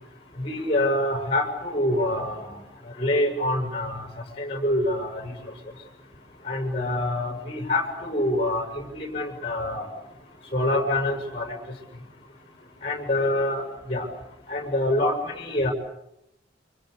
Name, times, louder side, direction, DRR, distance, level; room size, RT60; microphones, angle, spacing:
voice 1, 0.4-2.4 3.0-4.0 4.4-5.2 6.5-9.9 10.5-11.5 12.8-14.1 14.5-15.7, left 1 dB, 30° left, 5 dB, 6.9 m, -26 dB
29.5 x 26.5 x 6.8 m, 0.80 s
head